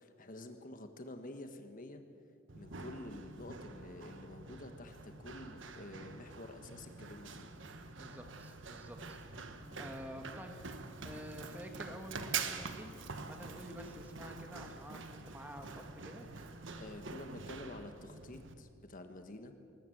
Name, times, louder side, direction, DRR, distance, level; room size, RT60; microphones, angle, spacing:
voice 1, 0.0-2.0 2.5-7.5 16.8-19.5, left 1 dB, 45° left, 7 dB, 1.3 m, -49 dB
Run, 2.5-18.5, right 5 dB, 65° right, 1.4 m, -46 dB
voice 2, 7.9-9.5 9.8-10.6 11.0-12.9 13.2-16.3, equal, 10° right, 4 dB, 1.8 m, -49 dB
20.5 x 20.0 x 7.8 m, 2.5 s
head